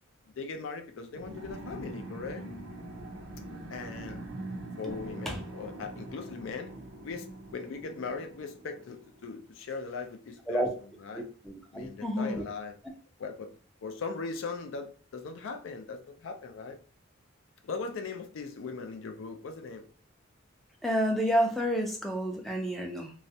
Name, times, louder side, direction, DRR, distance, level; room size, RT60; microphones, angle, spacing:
voice 1, 0.4-2.4 3.7-4.3 4.8-6.7 7.0-10.7 11.0-11.3 11.7-12.7 13.2-13.5 13.8-16.8 17.6-19.9, left 4 dB, 75° left, 6 dB, 0.4 m, -39 dB
sound 1, 1.1-9.3, right 1 dB, 70° right, 0.5 m, -43 dB
voice 2, 11.1-12.4 20.8-23.1, equal, ahead, 0 dB, 0.3 m, -30 dB
2.3 x 2.0 x 2.6 m, 0.39 s
head